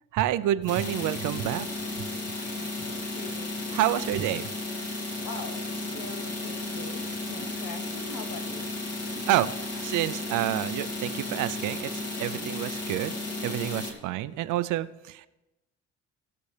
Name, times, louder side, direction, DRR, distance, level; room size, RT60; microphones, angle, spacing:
voice 1, 0.1-1.7 2.0-2.1 3.7-4.5 9.3-13.2 13.4-15.3, right 13 dB, 90° right, 14 dB, 0.5 m, -28 dB
sound 1, 0.6-13.9, left 2 dB, 50° left, 2.3 m, -34 dB
voice 2, 2.2-3.5 5.2-8.7 12.3-12.7, left 4 dB, 80° left, 7 dB, 1.3 m, -43 dB
19.0 x 6.8 x 3.3 m, 1.0 s
cardioid pair, 90°, 30 cm